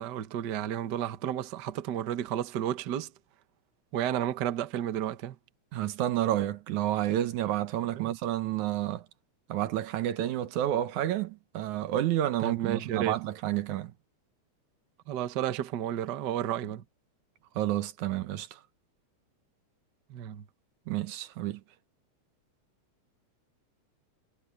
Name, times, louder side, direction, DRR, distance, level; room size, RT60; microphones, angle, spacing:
voice 1, 0.0-3.1 3.9-5.4 7.9-8.1 12.4-13.2 15.1-16.8 20.1-20.4, right 11 dB, 55° right, 1.2 m, -32 dB
voice 2, 5.7-9.1 9.5-13.9 17.6-18.6 20.9-21.6, right 12 dB, 90° right, 2.5 m, -30 dB
omnidirectional pair, 3.3 m